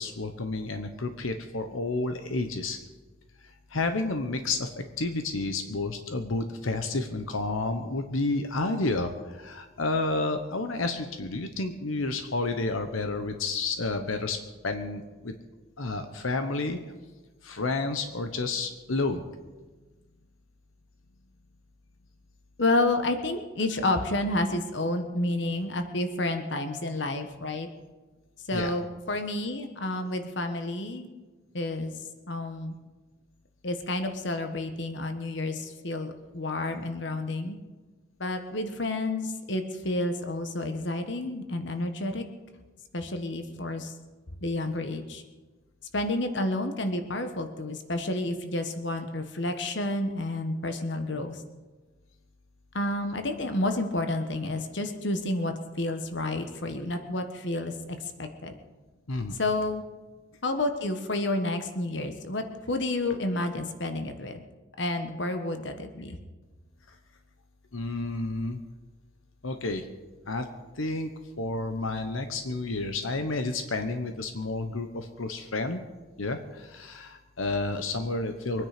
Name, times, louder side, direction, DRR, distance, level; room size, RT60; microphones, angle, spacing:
voice 1, 0.0-2.8 3.7-4.7 5.0-14.4 14.6-15.3 15.8-16.8 17.4-19.2 28.5-28.7 59.1-59.4 67.7-68.6 69.4-69.9 70.3-70.5 70.8-71.1 71.4-75.8 76.2-78.7, left 3 dB, 85° left, 7 dB, 1.1 m, -30 dB
voice 2, 22.6-27.7 28.5-31.1 31.5-31.9 32.3-32.8 33.6-37.6 38.2-42.2 42.9-43.9 44.4-45.2 45.9-51.4 52.7-57.7 58.2-58.5 59.3-59.8 60.4-64.4 64.8-66.2, left 2 dB, 60° left, 7 dB, 1.3 m, -30 dB
24.0 x 9.7 x 5.1 m, 1.3 s
head